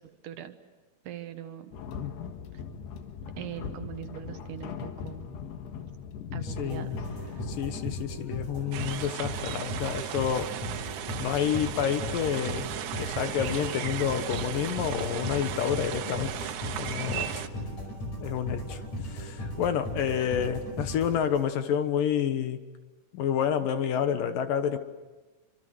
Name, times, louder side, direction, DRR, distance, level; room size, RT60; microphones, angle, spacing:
voice 1, 0.2-0.6 1.0-1.7 2.5-2.6 3.4-5.3 6.3-7.4 17.3-17.4, right 11 dB, 65° right, 8 dB, 2.5 m, -41 dB
sound 1, 1.7-9.1, left 6 dB, 90° left, 3.7 m, -41 dB
voice 2, 2.0-2.3 6.3-7.1 7.5-10.5 11.2-12.7 13.0-16.4 16.8-17.3 18.2-22.6 23.1-24.8, left 8 dB, 70° left, 9 dB, 2.7 m, -29 dB
sound 2, 6.5-21.7, equal, 45° left, 6.3 m, -37 dB
sound 3, 8.7-17.5, right 11 dB, 85° right, 3.2 m, -36 dB
27.5 x 26.0 x 7.8 m, 1.2 s
omnidirectional pair, 4.6 m